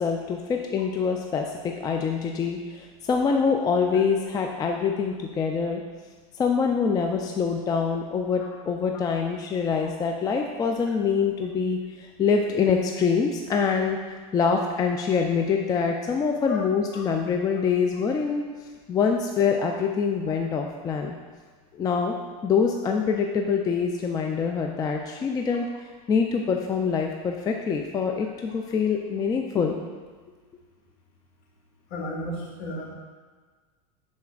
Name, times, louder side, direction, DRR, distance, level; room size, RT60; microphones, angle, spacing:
voice 1, 0.0-5.8 6.4-18.4 18.9-21.2 21.7-22.1 22.4-29.8, left 5 dB, 20° left, 2 dB, 0.4 m, -25 dB
voice 2, 31.9-32.8, left 2 dB, 55° left, -2 dB, 1.8 m, -33 dB
10.5 x 4.2 x 2.4 m, 1.5 s
supercardioid pair, 120°, 19 cm